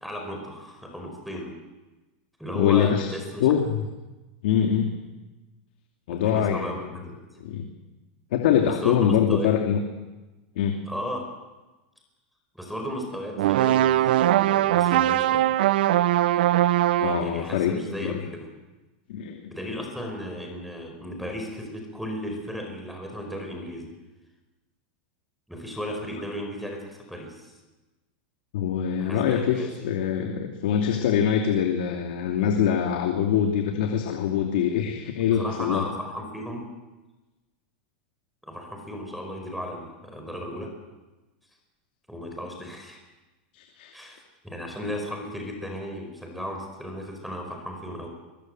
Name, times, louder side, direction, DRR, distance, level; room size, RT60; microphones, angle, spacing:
voice 1, 0.0-1.5 2.4-3.5 6.1-7.1 8.8-9.5 10.8-11.2 12.5-15.5 17.2-18.5 19.5-23.9 25.5-27.5 29.0-29.7 35.3-36.7 38.4-40.7 42.1-43.0 43.9-48.1, equal, ahead, 2 dB, 5.0 m, -35 dB
voice 2, 2.5-3.1 3.4-3.9 4.4-4.9 6.1-6.8 7.4-7.6 8.3-9.8 10.6-10.8 17.0-18.2 19.1-19.5 28.5-35.9 43.5-43.9, left 8 dB, 75° left, 3 dB, 2.7 m, -24 dB
sound 1, 13.4-17.3, right 13 dB, 75° right, 0.8 m, -21 dB
22.5 x 21.5 x 7.9 m, 1.1 s
supercardioid pair, 150°, 5 cm